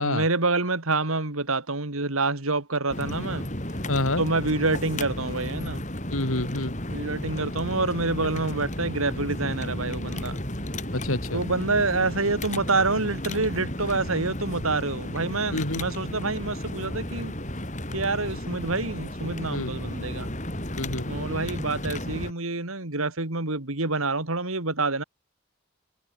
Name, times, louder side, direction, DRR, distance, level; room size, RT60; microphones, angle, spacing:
voice 1, 0.0-3.5 4.2-5.8 6.9-10.4 11.3-17.3 17.9-20.3 21.1-25.0, right 3 dB, 75° right, 2.9 m, -27 dB
sound 1, 2.9-22.3, left 1 dB, 35° left, 5.8 m, -33 dB
voice 2, 3.9-4.2 6.1-6.8 10.9-11.4 15.5-15.8 19.5-19.7 20.8-21.1, left 2 dB, 75° left, 4.2 m, -27 dB
head